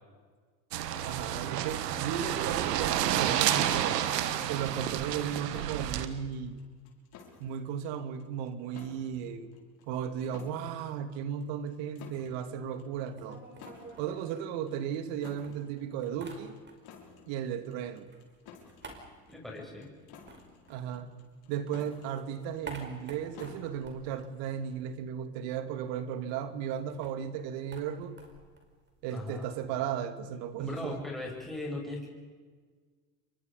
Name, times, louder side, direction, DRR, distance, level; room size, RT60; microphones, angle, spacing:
sound 1, 0.7-6.1, right 11 dB, 90° right, 1.7 m, -30 dB
voice 1, 1.0-4.1 4.5-6.6 7.4-9.5 9.9-13.4 14.0-16.5 17.3-18.1 20.7-21.1 21.5-28.2 29.0-31.0, right 8 dB, 65° right, 10 dB, 2.4 m, -35 dB
sound 2, 5.5-24.9, left 6 dB, 50° left, 6.2 m, -55 dB
sound 3, 12.9-15.1 15.4-17.1 17.3-21.5 21.8-25.1 25.4-25.5 25.7-31.5, right 3 dB, 25° right, 5.2 m, -51 dB
voice 2, 19.3-19.9 29.1-29.5 30.6-32.1, left 2 dB, ahead, -3 dB, 7.8 m, -38 dB
29.5 x 23.5 x 5.4 m, 1.5 s
supercardioid pair, 95°, 47 cm